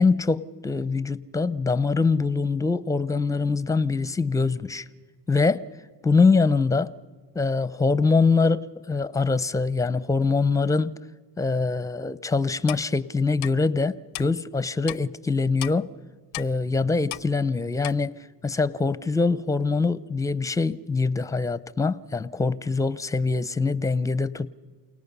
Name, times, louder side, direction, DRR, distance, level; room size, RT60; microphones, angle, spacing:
voice 1, 0.0-4.9 5.3-5.7 6.0-6.9 7.3-11.0 11.4-15.9 16.4-24.5, left 4 dB, 10° left, 17 dB, 0.5 m, -24 dB
Clock, 12.7-12.8 13.4-13.5 14.1-14.3 14.9-15.0 15.6-15.7 16.3-16.5 17.1-17.3 17.8-17.9, left 25 dB, 80° left, 0.5 m, -34 dB
28.5 x 18.5 x 5.5 m, 1.4 s
supercardioid pair, 95°, 45 cm